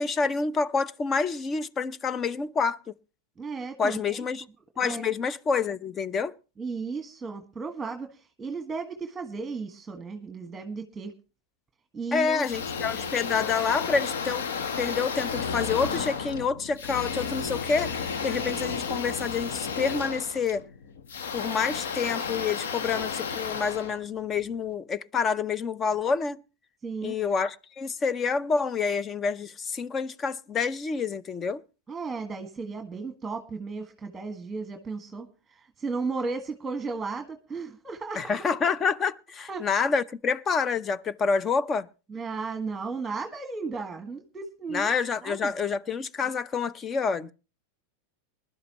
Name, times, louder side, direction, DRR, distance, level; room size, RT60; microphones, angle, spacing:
voice 1, 0.0-2.8 3.8-4.4 4.8-6.3 12.1-14.5 14.8-17.9 18.2-20.6 21.3-26.4 27.0-31.6 38.1-41.9 44.7-47.3, left 5 dB, 25° left, 0.7 m, -28 dB
voice 2, 3.4-4.2 4.8-5.1 6.6-11.1 11.9-12.4 26.8-27.2 31.9-38.4 39.5-39.7 42.1-44.9 45.2-45.5, right 4 dB, 15° right, 1.7 m, -35 dB
sound 1, 12.4-24.6, left 5 dB, 75° left, 1.2 m, -32 dB
21.0 x 11.5 x 3.0 m
hypercardioid pair, 105°, 0 cm